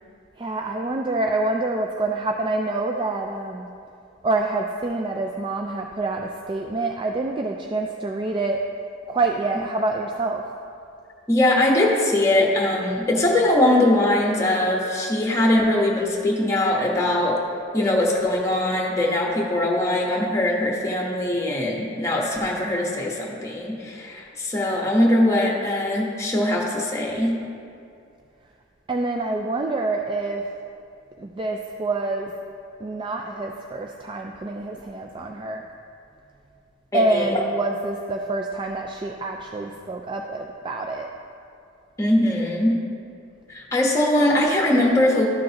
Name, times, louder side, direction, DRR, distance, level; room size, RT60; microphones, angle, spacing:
voice 1, 0.4-3.7 4.2-8.7 9.1-10.5 28.9-30.5 31.2-32.3 32.8-35.6 36.9-41.1, right 2 dB, 25° right, 2 dB, 0.3 m, -26 dB
voice 2, 11.3-17.4 17.7-27.3 36.9-37.4 42.0-42.7 43.5-45.3, left 1 dB, 15° left, -1 dB, 1.1 m, -21 dB
13.0 x 6.3 x 2.9 m, 2.5 s
head